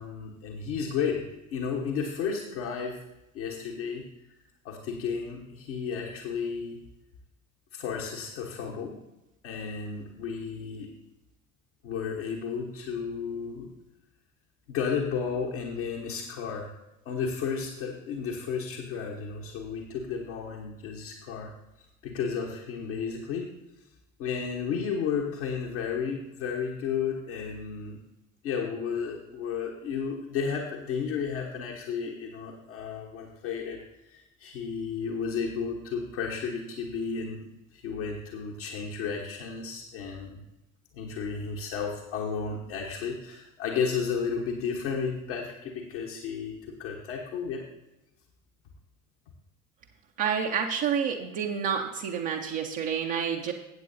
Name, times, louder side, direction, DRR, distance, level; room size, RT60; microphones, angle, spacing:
voice 1, 0.0-3.0 3.3-4.4 4.6-6.8 7.7-9.0 9.4-10.9 11.8-13.7 14.7-16.7 17.0-21.5 22.0-23.5 24.2-28.0 28.4-40.4 40.9-47.6, left 6 dB, 65° left, -1 dB, 1.3 m, -33 dB
voice 2, 50.2-53.5, right 7 dB, 55° right, 1 dB, 0.9 m, -29 dB
16.0 x 8.3 x 2.7 m, 0.93 s
figure-of-eight pair, 50°, 38 cm